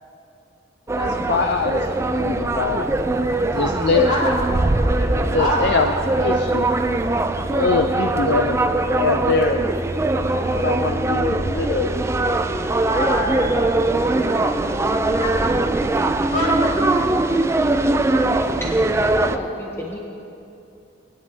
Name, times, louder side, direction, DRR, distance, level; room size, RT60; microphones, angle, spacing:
voice 1, 0.9-1.8 2.1-2.9 3.4-4.1 5.0-5.9 6.2-6.7 7.5-8.6 8.9-9.6 10.5-12.0, left 4 dB, 60° left, 4 dB, 0.5 m, -23 dB
sound 1, 0.9-19.4, right 2 dB, 15° right, 0.3 m, -21 dB
voice 2, 5.0-5.9 12.9-13.6 14.2-14.5 15.1-15.7 16.3-17.1, equal, 40° left, -5 dB, 2.4 m, -26 dB
voice 3, 18.9-20.0, left 1 dB, 15° left, -2 dB, 0.8 m, -32 dB
19.0 x 9.6 x 2.8 m, 2.7 s
head